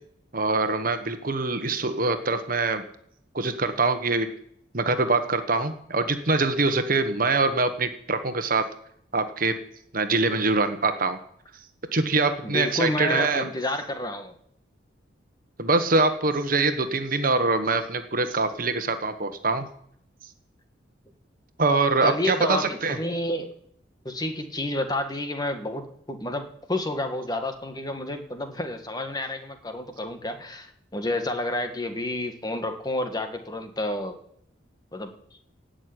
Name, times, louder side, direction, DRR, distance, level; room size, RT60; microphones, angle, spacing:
voice 1, 0.3-2.8 3.3-4.3 4.7-8.7 9.1-9.6 9.9-11.2 11.9-13.5 15.6-19.7 21.6-23.0, right 3 dB, 45° right, 8 dB, 1.4 m, -24 dB
voice 2, 12.4-14.3 22.0-23.5 24.0-34.2 34.9-35.1, left 1 dB, 20° left, 6 dB, 1.7 m, -30 dB
17.0 x 6.6 x 9.8 m, 0.68 s
head